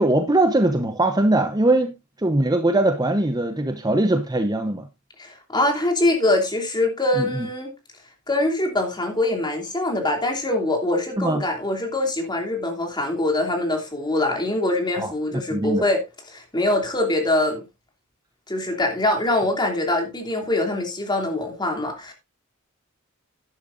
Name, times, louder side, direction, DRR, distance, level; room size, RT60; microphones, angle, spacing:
voice 1, 0.0-4.9 7.2-7.5 11.2-11.4 14.9-15.8, right 1 dB, 20° right, 0.9 m, -21 dB
voice 2, 5.2-7.7 8.3-16.0 16.3-17.6 18.5-22.1, left 2 dB, 20° left, 3.1 m, -23 dB
12.0 x 10.5 x 2.6 m
head